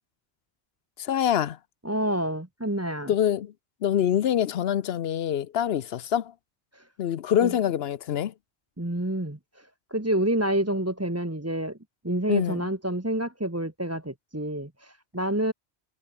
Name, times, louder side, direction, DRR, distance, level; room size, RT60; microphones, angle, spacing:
voice 1, 1.0-1.6 3.1-3.5 3.8-6.3 7.0-8.3 12.3-12.7, left 10 dB, 65° left, 0.9 m, -25 dB
voice 2, 1.8-3.1 6.7-6.8 7.4-7.5 8.8-9.4 9.9-11.8 12.0-15.5, right 1 dB, 15° right, 1.6 m, -28 dB
omnidirectional pair, 1.1 m